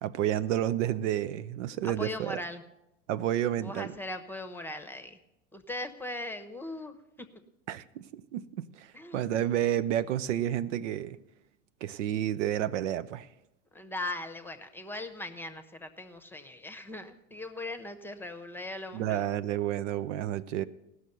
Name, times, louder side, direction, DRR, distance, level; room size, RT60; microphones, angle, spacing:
voice 1, 0.0-2.4 3.1-3.9 7.7-8.5 8.7-11.2 11.8-13.3 18.9-20.6, right 11 dB, 75° right, 0.6 m, -30 dB
voice 2, 1.8-2.6 3.6-5.2 5.5-7.0 8.9-9.5 13.7-19.3, left 1 dB, 5° left, 0.9 m, -39 dB
16.0 x 6.4 x 6.7 m
hypercardioid pair, 95°, 36 cm